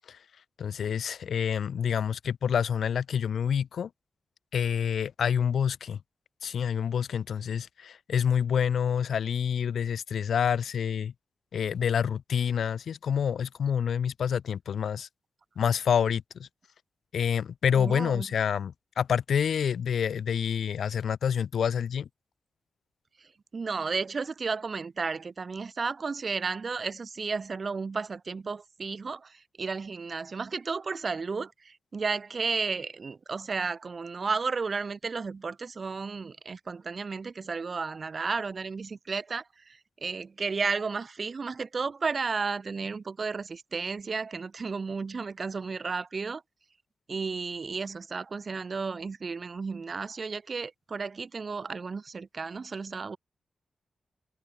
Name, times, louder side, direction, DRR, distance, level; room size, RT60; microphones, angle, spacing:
voice 1, 0.6-3.9 4.5-6.0 6.4-11.1 11.5-15.1 15.6-16.5 17.1-22.1, left 8 dB, 80° left, 0.9 m, -27 dB
voice 2, 17.7-18.3 23.5-46.4 47.1-53.2, right 4 dB, 50° right, 1.3 m, -33 dB
cardioid pair, 55°, 0 cm